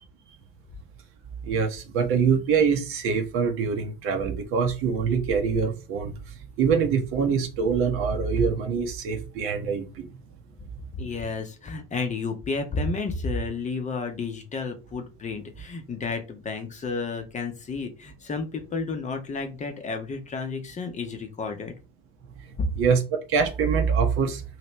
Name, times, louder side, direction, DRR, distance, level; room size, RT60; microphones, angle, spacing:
voice 1, 1.4-10.1 22.8-24.4, right 6 dB, 45° right, 0.9 m, -24 dB
voice 2, 10.9-21.7, left 4 dB, 25° left, 0.8 m, -31 dB
3.1 x 2.9 x 3.0 m
figure-of-eight pair, 70°, 31 cm